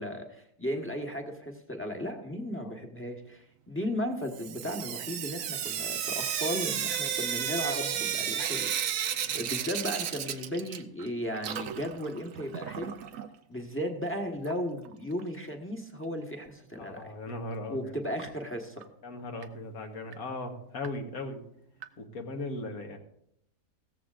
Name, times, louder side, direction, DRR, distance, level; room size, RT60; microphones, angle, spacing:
voice 1, 0.0-8.7 8.9-12.9 13.5-17.1 17.7-18.8, equal, 10° left, 2 dB, 1.2 m, -35 dB
Sink (filling or washing) / Drip, 4.3-11.1 11.3-13.3 14.4-14.5 14.9-15.0 15.2-15.3 18.2-18.3 18.8-18.9 19.4-19.5 20.1-20.2 20.8-20.9 21.8-21.9, right 9 dB, 65° right, 1.0 m, -33 dB
voice 2, 16.8-17.9 19.0-21.4 22.0-23.0, left 2 dB, 70° left, 4 dB, 1.8 m, -38 dB
16.5 x 14.0 x 2.5 m, 0.73 s
omnidirectional pair, 1.6 m